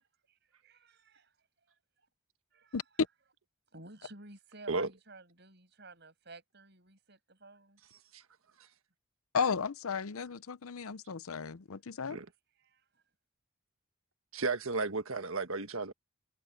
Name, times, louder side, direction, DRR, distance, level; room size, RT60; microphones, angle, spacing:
voice 1, 0.3-1.3 2.5-2.8 3.7-7.8 12.6-13.0, right 3 dB, 50° right, 7.3 m, -53 dB
voice 2, 9.3-12.2, left 6 dB, 85° left, 0.7 m, -34 dB
voice 3, 14.3-15.9, right 3 dB, 75° right, 1.5 m, -33 dB
head